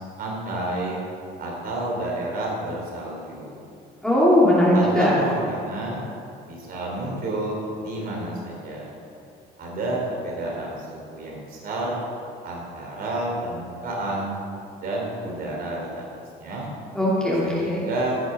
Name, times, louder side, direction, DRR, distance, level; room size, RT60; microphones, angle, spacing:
voice 1, 0.2-1.0 1.4-3.6 4.7-6.0 6.4-8.9 9.6-12.0 12.4-14.4 14.8-16.7 17.4-18.2, right 2 dB, 60° right, -2 dB, 3.4 m, -30 dB
voice 2, 4.0-5.1 16.9-17.9, left 1 dB, 5° left, -8 dB, 2.7 m, -19 dB
15.5 x 7.0 x 5.6 m, 2.5 s
cardioid pair, 110°, 17 cm